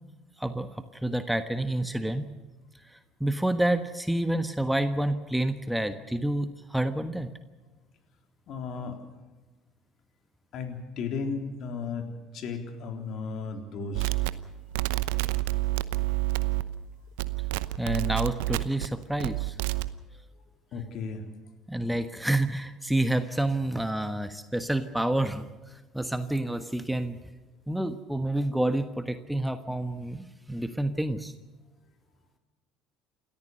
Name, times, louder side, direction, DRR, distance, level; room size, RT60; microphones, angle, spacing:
voice 1, 1.0-2.3 2.9-7.3 17.8-19.5 21.7-27.2 27.7-31.3, right 1 dB, 5° right, 9 dB, 1.3 m, -29 dB
voice 2, 8.5-9.0 10.5-14.2 20.7-21.3, left 4 dB, 55° left, 5 dB, 3.7 m, -35 dB
sound 1, 13.9-16.9 17.2-18.9 19.2-19.9, right 20 dB, 70° right, 0.8 m, -28 dB
28.5 x 14.0 x 6.7 m, 1.3 s
hypercardioid pair, 60°, 0 cm